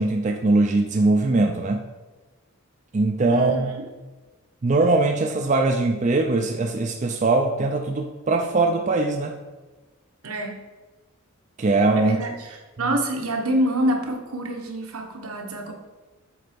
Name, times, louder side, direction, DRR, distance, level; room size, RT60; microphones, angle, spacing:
voice 1, 0.0-1.9 2.9-3.8 4.6-9.4 11.6-12.2 12.9-13.0, right 2 dB, 30° right, 4 dB, 0.4 m, -21 dB
voice 2, 3.3-3.8 10.2-10.6 12.0-12.3 12.8-15.7, right 1 dB, 80° right, 2 dB, 1.2 m, -26 dB
7.7 x 4.0 x 5.1 m, 1.2 s
head